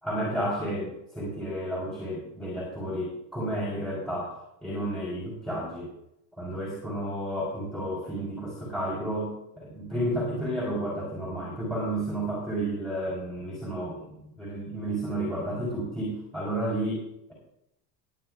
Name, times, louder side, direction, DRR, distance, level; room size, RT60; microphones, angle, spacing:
voice 1, 0.0-5.9 6.4-17.0, right 1 dB, ahead, -4 dB, 3.9 m, -32 dB
20.0 x 10.0 x 2.4 m, 0.81 s
supercardioid pair, 160°, 48 cm